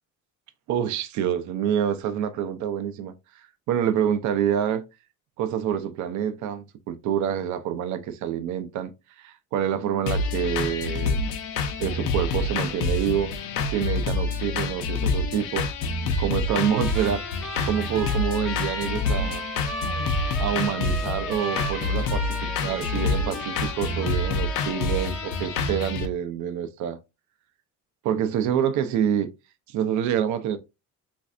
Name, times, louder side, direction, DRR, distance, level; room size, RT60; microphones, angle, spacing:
voice 1, 0.7-3.1 3.7-4.8 5.4-8.9 9.2-11.2 11.8-15.7 16.2-17.2 17.6-19.4 20.4-27.0 28.0-29.3 29.7-30.6, right 9 dB, 65° right, 0.5 m, -27 dB
sound 1, 10.1-26.1, left 3 dB, 85° left, 0.6 m, -27 dB
Trumpet, 16.5-25.6, equal, ahead, 0.4 m, -36 dB
3.2 x 2.6 x 2.4 m
cardioid pair, 160°, 31 cm